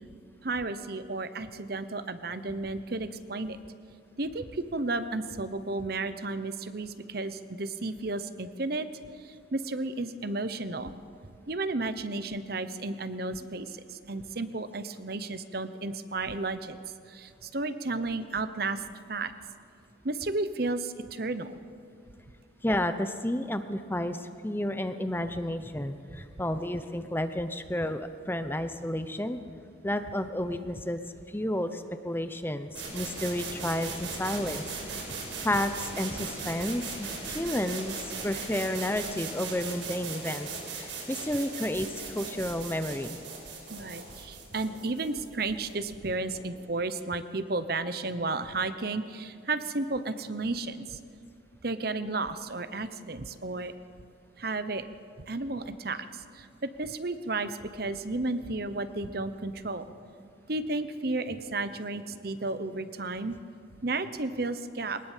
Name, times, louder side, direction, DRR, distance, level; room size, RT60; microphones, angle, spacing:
voice 1, 0.4-3.6 4.2-8.9 9.2-10.9 11.5-16.8 17.1-18.8 19.1-19.3 20.0-21.6 43.7-51.0 51.6-53.7 54.4-54.8 55.2-59.8 60.5-63.4 63.8-65.0, right 3 dB, 50° right, 11 dB, 1.0 m, -33 dB
voice 2, 22.6-29.4 29.8-31.0 31.3-35.0 35.4-40.5 40.7-41.9 42.1-43.2, left 1 dB, 10° left, 9 dB, 0.7 m, -31 dB
sound 1, 32.7-46.5, right 4 dB, 75° right, 7.3 m, -38 dB
22.0 x 19.5 x 7.4 m, 2.3 s
head